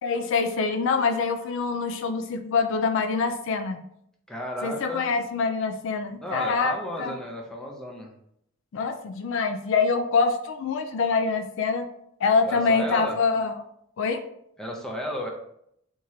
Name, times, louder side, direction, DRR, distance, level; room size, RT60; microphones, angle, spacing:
voice 1, 0.0-3.8 4.6-6.7 7.0-7.2 8.7-11.9 12.2-13.6 14.0-14.2, left 4 dB, 60° left, 7 dB, 0.3 m, -25 dB
voice 2, 4.3-5.1 6.2-8.1 12.4-13.2 14.6-15.3, equal, 5° left, -1 dB, 0.6 m, -33 dB
3.6 x 2.9 x 3.1 m, 0.72 s
head